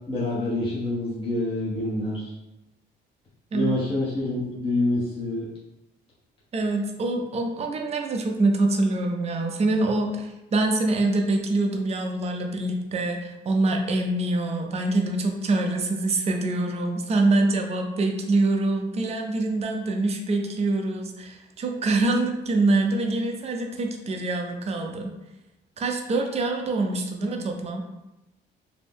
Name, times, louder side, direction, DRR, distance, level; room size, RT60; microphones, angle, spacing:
voice 1, 0.1-2.3 3.5-5.4, left 1 dB, 25° left, -7 dB, 0.7 m, -26 dB
voice 2, 6.5-25.1 25.8-27.8, right 2 dB, 30° right, 3 dB, 0.4 m, -25 dB
2.6 x 2.0 x 3.5 m, 0.95 s
cardioid pair, 90°, 20 cm